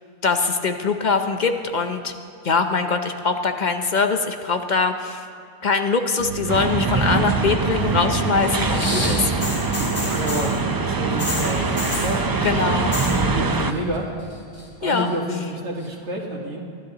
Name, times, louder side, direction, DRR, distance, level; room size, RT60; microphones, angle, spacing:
voice 1, 0.2-2.1 2.4-5.3 5.6-9.3 11.5-11.7 12.4-12.9 14.8-15.1, left 4 dB, 50° left, 7 dB, 0.7 m, -22 dB
sound 1, 6.2-13.7, right 8 dB, 65° right, 1.1 m, -31 dB
sound 2, 6.5-13.7, right 3 dB, 30° right, 0.4 m, -24 dB
sound 3, 8.6-10.6 11.2-12.2 12.8-13.2 13.4-14.0 14.3-15.1 15.8-15.9, left 1 dB, 70° left, 2.7 m, -29 dB
voice 2, 9.8-10.6 11.0-11.8 12.0-12.2 12.6-12.7 13.1-14.1 14.8-16.6, right 1 dB, 90° right, -2 dB, 1.9 m, -29 dB
22.0 x 13.0 x 2.9 m, 2.4 s
omnidirectional pair, 1.1 m